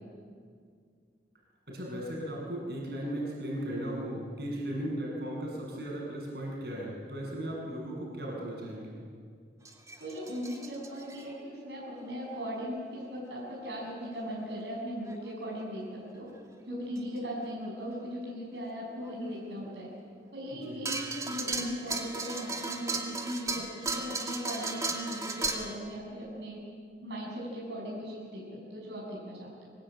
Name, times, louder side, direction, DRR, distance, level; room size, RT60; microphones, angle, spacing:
voice 1, 1.7-9.0 20.7-20.8, right 1 dB, 60° right, -3 dB, 7.9 m, -36 dB
sound 1, 9.7-11.3 12.1-12.2 14.0-14.1 15.0-15.2 17.0-17.2 17.6-17.7 19.0-19.1 20.9-25.8, right 3 dB, 20° right, 2.0 m, -36 dB
voice 2, 10.0-15.8 16.1-16.3 16.7-19.9 20.3-26.6 27.0-29.7, equal, 80° right, -4 dB, 7.0 m, -38 dB
25.5 x 21.0 x 9.2 m, 2.1 s
head